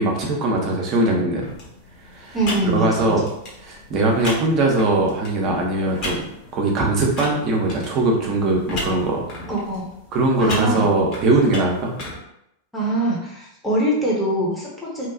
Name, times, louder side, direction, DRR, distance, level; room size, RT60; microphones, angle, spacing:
voice 1, 0.0-1.5 2.0-2.4 2.6-3.3 3.6-6.3 6.5-9.3 10.1-12.0, right 2 dB, 35° right, -1 dB, 0.7 m, -20 dB
sound 1, 1.4-12.2, left 1 dB, 40° left, 1.1 m, -35 dB
voice 2, 2.3-3.1 9.5-9.9 10.4-10.9 12.7-15.1, right 1 dB, 5° left, -5 dB, 0.9 m, -23 dB
2.8 x 2.3 x 2.5 m, 0.80 s
figure-of-eight pair, 90°, 0 cm